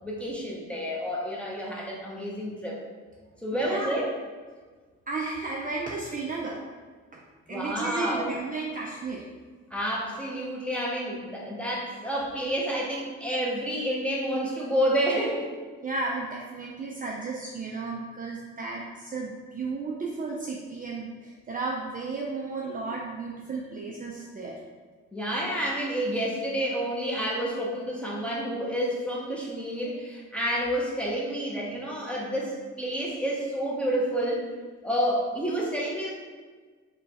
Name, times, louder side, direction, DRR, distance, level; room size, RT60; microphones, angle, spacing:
voice 1, 0.0-2.8 3.4-4.1 7.5-8.3 9.7-15.5 25.1-34.5 34.8-36.1, equal, 5° left, -3 dB, 0.8 m, -29 dB
voice 2, 3.5-3.9 5.1-6.6 7.1-7.2 7.5-9.2 15.8-24.6, right 3 dB, 30° right, -2 dB, 0.4 m, -33 dB
3.2 x 2.3 x 4.0 m, 1.5 s
cardioid pair, 90°, 30 cm